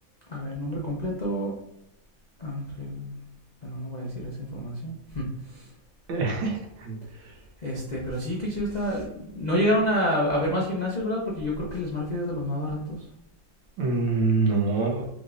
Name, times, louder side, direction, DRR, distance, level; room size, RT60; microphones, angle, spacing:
voice 1, 0.3-1.5 2.4-3.2 3.6-5.7 7.6-13.0, equal, 55° left, -4 dB, 0.4 m, -28 dB
voice 2, 6.1-7.3 13.8-15.1, right 3 dB, 75° right, 1 dB, 1.7 m, -26 dB
5.1 x 3.5 x 2.5 m, 0.83 s
omnidirectional pair, 2.1 m